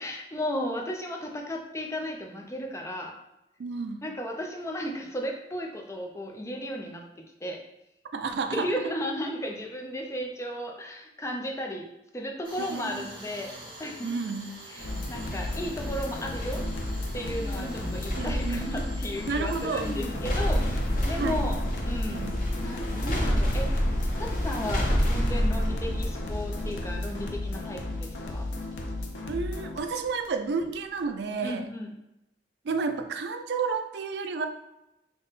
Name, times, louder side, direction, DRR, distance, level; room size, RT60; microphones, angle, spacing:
voice 1, 0.0-3.1 4.0-7.0 7.4-7.6 8.5-11.8 12.1-13.5 13.8-14.1 14.7-14.8 15.1-16.6 17.1-21.6 21.8-22.2 22.6-23.9 24.2-28.5 31.4-31.9, equal, 15° left, 2 dB, 0.4 m, -34 dB
voice 2, 3.6-4.0 8.1-8.9 12.6-13.1 14.0-14.6 18.2-18.7 19.3-19.9 21.2-21.4 22.1-22.4 29.3-31.7 32.6-34.5, right 4 dB, 70° right, 8 dB, 0.4 m, -31 dB
Tools, 12.4-19.9, right 1 dB, 30° right, 1.5 m, -46 dB
sound 1, 14.8-29.8, left 2 dB, 90° left, 0.5 m, -35 dB
sound 2, 14.8-30.3 30.6-30.7, equal, 50° left, 0.7 m, -30 dB
3.6 x 2.1 x 3.9 m, 0.89 s
head